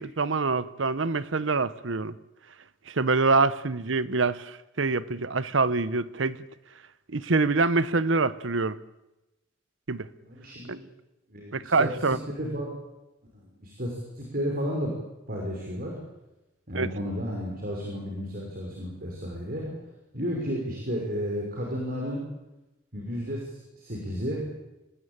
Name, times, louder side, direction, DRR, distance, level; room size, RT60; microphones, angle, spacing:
voice 1, 0.0-2.2 2.9-6.4 7.1-8.8 9.9-10.1 10.7-10.8 11.5-12.2 16.7-16.9, right 3 dB, 80° right, 1.0 m, -25 dB
voice 2, 10.2-10.8 11.3-12.7 13.3-14.9 15.3-15.9 16.7-19.7 20.1-22.3 22.9-24.4, equal, 50° right, 5.6 m, -32 dB
25.5 x 19.5 x 8.9 m
head